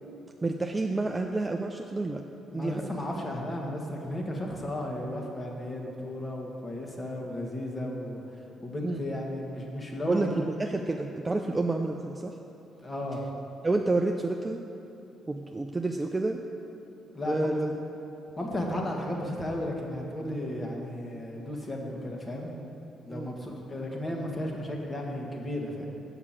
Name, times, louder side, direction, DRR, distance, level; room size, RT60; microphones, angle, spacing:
voice 1, 0.4-2.2 2.5-2.9 8.8-9.0 10.1-12.3 13.6-14.6 15.3-16.4 17.2-17.7 23.1-23.3, right 2 dB, 20° right, 3 dB, 0.4 m, -29 dB
voice 2, 2.5-8.2 8.6-10.3 12.8-13.2 17.1-17.5 18.4-22.5 23.0-25.9, left 1 dB, 25° left, 0 dB, 1.5 m, -34 dB
6.5 x 5.9 x 7.4 m, 2.9 s
cardioid pair, 90°, 0 cm